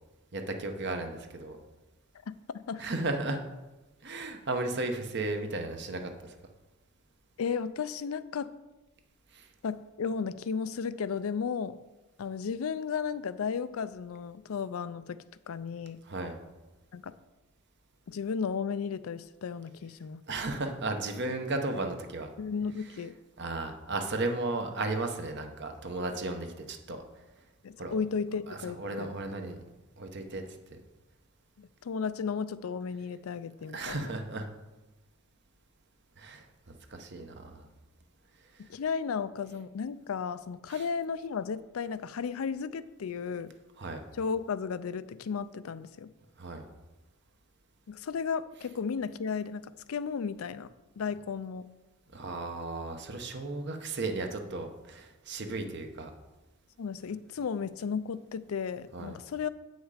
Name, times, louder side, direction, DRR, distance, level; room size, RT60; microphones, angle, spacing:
voice 1, 0.3-1.6 2.8-3.4 4.0-6.3 9.3-9.5 16.0-16.4 20.3-22.3 23.4-27.0 27.8-28.0 28.5-29.6 30.0-30.4 30.7-30.8 33.6-34.5 36.2-37.7 38.5-38.7 40.7-40.8 43.8-44.0 46.4-46.6 52.1-56.1 58.9-59.2, right 2 dB, 55° right, 5 dB, 1.0 m, -35 dB
voice 2, 7.4-8.5 9.6-11.8 12.2-16.0 16.9-17.1 18.1-20.2 22.4-23.2 27.6-29.1 31.6-34.1 38.6-43.5 44.2-46.1 47.9-51.7 56.8-59.5, left 6 dB, 90° left, 15 dB, 0.4 m, -34 dB
8.3 x 6.2 x 4.9 m, 1.1 s
head